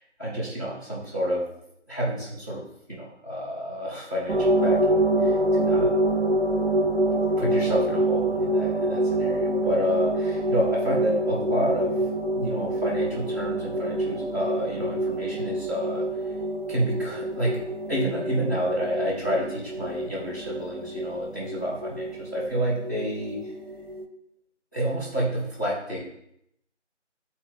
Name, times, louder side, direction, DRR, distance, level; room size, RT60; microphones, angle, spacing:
voice 1, 0.0-1.4 1.9-2.6 2.9-5.9 7.4-12.1 12.3-16.1 16.7-17.6 17.9-23.4 24.7-26.1, equal, 15° left, -10 dB, 1.3 m, -29 dB
sound 1, 4.3-24.1, right 1 dB, 55° right, 0.7 m, -26 dB
8.9 x 4.2 x 3.9 m, 0.75 s
figure-of-eight pair, 165°, 36 cm